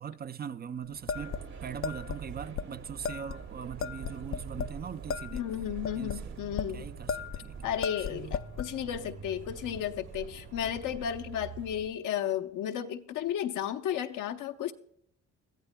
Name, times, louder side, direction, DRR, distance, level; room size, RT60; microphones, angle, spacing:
voice 1, 0.0-5.4 5.9-6.2 6.7-7.6 8.1-8.3, right 7 dB, 35° right, 0.4 m, -41 dB
sound 1, 0.9-11.0, right 4 dB, 90° right, 2.6 m, -53 dB
sound 2, 1.1-2.2 2.6-2.7 3.0-3.4 3.8-4.8 5.1-6.7 7.1-7.5 7.8-8.7, left 6 dB, 45° left, 0.4 m, -35 dB
sound 3, 1.1-11.9, right 6 dB, 70° right, 1.9 m, -45 dB
voice 2, 5.3-6.9 7.6-14.7, left 10 dB, 85° left, 0.9 m, -33 dB
21.0 x 14.0 x 2.2 m
cardioid pair, 90°, 30 cm